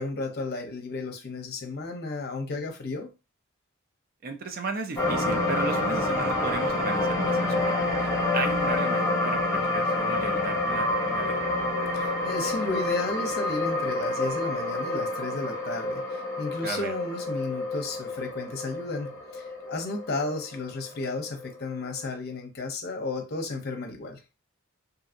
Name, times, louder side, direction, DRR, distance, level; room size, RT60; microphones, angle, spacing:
voice 1, 0.0-3.1 11.9-24.2, left 3 dB, 50° left, 0.7 m, -33 dB
voice 2, 4.2-7.8 8.3-11.4 16.6-16.9, right 4 dB, 45° right, 0.4 m, -35 dB
sound 1, 5.0-21.4 21.9-22.0, left 2 dB, 15° left, 1.0 m, -28 dB
2.7 x 2.7 x 2.5 m
head